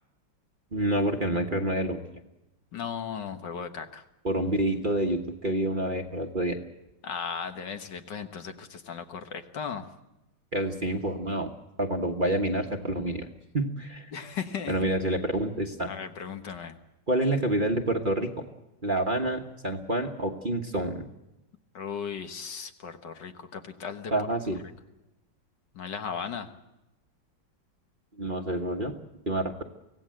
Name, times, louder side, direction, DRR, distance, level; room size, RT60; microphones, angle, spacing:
voice 1, 0.7-2.0 4.2-6.6 10.5-11.5 11.8-13.3 13.5-14.1 14.7-15.9 17.1-18.3 18.8-21.1 24.1-24.6 28.2-28.9 29.3-29.6, right 1 dB, 30° right, 3 dB, 1.3 m, -28 dB
voice 2, 2.7-4.0 7.0-9.9 14.1-14.9 15.8-16.8 21.7-24.1 25.7-26.5, left 6 dB, 65° left, 7 dB, 1.9 m, -36 dB
24.5 x 17.0 x 7.7 m, 0.95 s
omnidirectional pair, 2.1 m